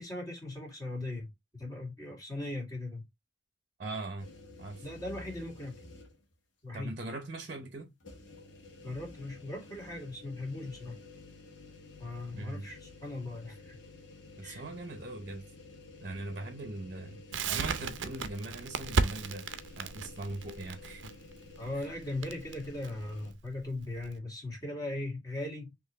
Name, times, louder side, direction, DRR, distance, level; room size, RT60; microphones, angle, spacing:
voice 1, 0.0-3.1 4.8-5.8 6.6-7.0 8.8-11.0 12.0-13.8 14.4-14.6 21.6-25.7, left 2 dB, 20° left, 2.1 m, -39 dB
voice 2, 3.8-4.3 4.6-4.8 6.7-7.9 12.3-12.7 14.4-15.4 16.0-21.2, right 2 dB, 45° right, 0.8 m, -40 dB
sound 1, 4.2-6.3 6.8-6.9 8.0-23.3, left 2 dB, 80° left, 1.3 m, -51 dB
Crackle, 17.3-24.1, right 4 dB, 80° right, 0.5 m, -34 dB
4.4 x 3.0 x 2.9 m
head